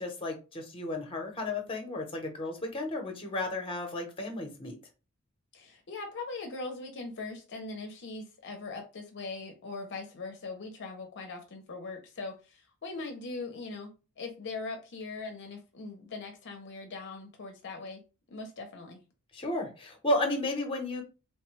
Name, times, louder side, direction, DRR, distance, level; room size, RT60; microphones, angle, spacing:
voice 1, 0.0-4.8 19.3-21.0, left 1 dB, 25° left, 0.7 m, -33 dB
voice 2, 5.5-18.0 18.3-19.0, left 3 dB, 55° left, 0.5 m, -41 dB
3.1 x 2.1 x 3.1 m
head